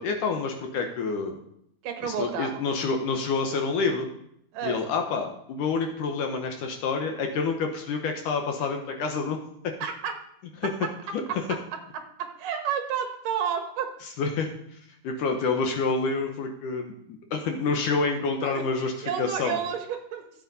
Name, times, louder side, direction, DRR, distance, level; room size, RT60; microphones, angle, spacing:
voice 1, 0.0-1.4 2.0-4.1 4.6-9.4 10.6-10.7 11.1-11.4 14.2-14.8 15.0-19.6, left 4 dB, 70° left, 3 dB, 2.3 m, -28 dB
voice 2, 1.8-2.6 4.5-4.8 9.8-10.1 12.4-13.9 18.4-20.2, right 8 dB, 70° right, 5 dB, 2.6 m, -31 dB
14.5 x 8.0 x 4.1 m, 0.72 s
omnidirectional pair, 4.3 m